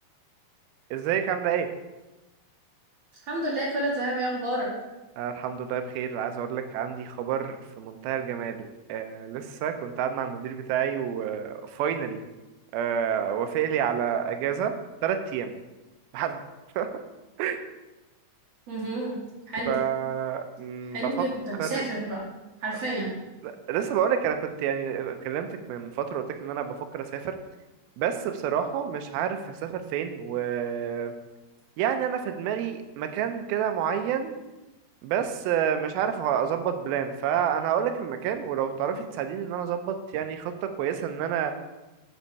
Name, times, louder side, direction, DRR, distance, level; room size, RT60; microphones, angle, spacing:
voice 1, 0.9-1.7 5.2-12.2 12.7-14.7 15.0-15.5 16.1-16.4 16.8-16.9 17.4-17.6 19.7-21.3 21.6-21.9 22.7-22.8 23.4-27.3 28.0-31.1 31.8-34.4 35.0-41.5, right 8 dB, 80° right, 7 dB, 2.5 m, -29 dB
voice 2, 3.3-4.7 18.7-19.2 19.5-19.7 20.9-22.2 22.6-23.1, right 2 dB, 50° right, -5 dB, 2.6 m, -29 dB
6.9 x 6.1 x 4.6 m, 1.1 s
omnidirectional pair, 4.4 m